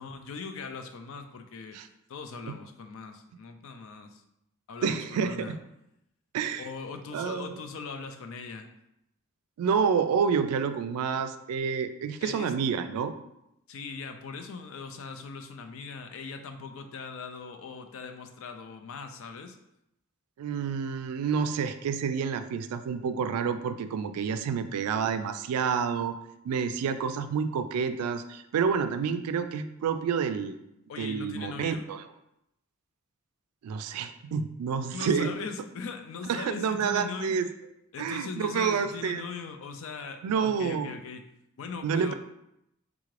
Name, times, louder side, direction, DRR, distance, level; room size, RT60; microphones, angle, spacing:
voice 1, 0.0-1.8 2.1-4.2 4.7-5.6 6.6-8.7 12.2-12.5 13.7-19.6 30.9-31.8 34.9-37.4 37.9-41.3 41.6-42.1, left 5 dB, 60° left, 7 dB, 0.4 m, -40 dB
voice 2, 4.8-5.6 6.3-6.7 7.1-7.5 9.6-13.1 20.4-26.1 26.4-30.6 31.0-32.0 33.6-35.3 36.3-37.5 38.0-39.2 40.2-40.9 41.8-42.1, right 6 dB, 90° right, 13 dB, 0.3 m, -29 dB
3.6 x 2.4 x 3.1 m, 0.82 s
head